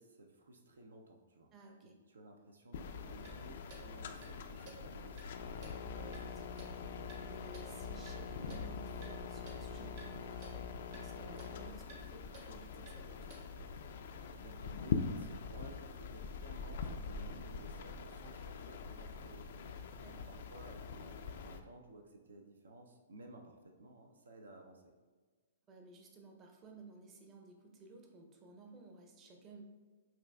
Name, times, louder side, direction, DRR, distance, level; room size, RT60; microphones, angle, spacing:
voice 1, 0.0-1.5 2.1-5.5 14.1-24.9, right 1 dB, 80° right, 3 dB, 0.4 m, -55 dB
voice 2, 1.5-2.0 5.8-6.7 7.2-10.5 10.9-13.5 20.0-20.3 25.7-29.6, right 3 dB, 25° right, 1 dB, 0.6 m, -56 dB
sound 1, 2.7-21.6, left 5 dB, 60° left, 0.3 m, -43 dB
Clock, 3.2-13.8, right 2 dB, 50° right, 1.0 m, -57 dB
5.8 x 2.4 x 2.2 m, 1.4 s
hypercardioid pair, 125°, 0 cm